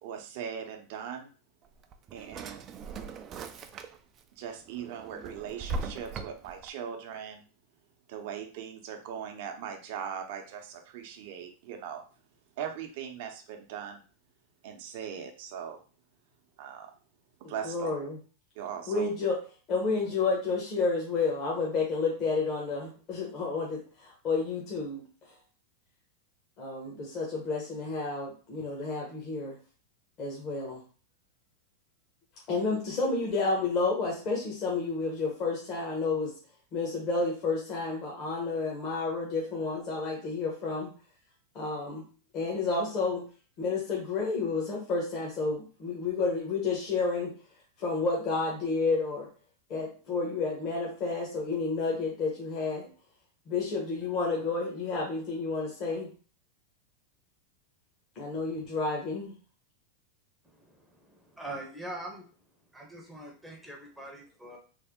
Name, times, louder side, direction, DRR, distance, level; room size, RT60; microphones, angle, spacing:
voice 1, 0.0-1.3 2.1-2.6 4.4-7.4 8.1-12.0 12.6-14.0 14.6-15.8 16.6-16.9 17.5-17.9 18.6-19.1, right 8 dB, 60° right, 4 dB, 0.7 m, -39 dB
Drawer open or close, 1.7-4.2 4.6-6.7, right 3 dB, 30° right, 0.3 m, -39 dB
voice 2, 17.4-18.2 18.9-19.4 19.7-25.0 26.6-29.6 30.2-30.8 32.5-36.3 36.7-40.9 41.5-42.0 42.3-43.2 43.6-47.3 47.8-49.3 49.7-52.9 53.5-56.1 58.1-59.3, left 4 dB, 40° left, -2 dB, 1.0 m, -30 dB
voice 3, 60.4-62.3 62.7-64.6, right 1 dB, 5° right, 0 dB, 0.7 m, -43 dB
3.3 x 2.1 x 3.5 m, 0.38 s
supercardioid pair, 140°, 0 cm